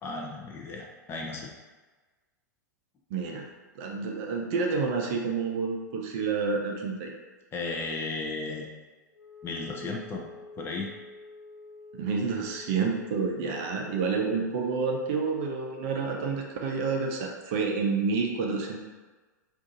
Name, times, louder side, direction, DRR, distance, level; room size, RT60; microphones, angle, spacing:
voice 1, 0.0-1.5 7.5-8.7 9.4-10.2 10.6-10.9, left 3 dB, 25° left, -1 dB, 0.6 m, -34 dB
voice 2, 3.1-3.5 3.8-7.1 12.0-18.8, right 4 dB, 45° right, 1 dB, 0.6 m, -29 dB
Wind instrument woodwind instrument, 9.1-16.2, left 2 dB, 75° left, 0.5 m, -48 dB
2.6 x 2.5 x 3.8 m, 1.3 s
figure-of-eight pair, 95°, 10 cm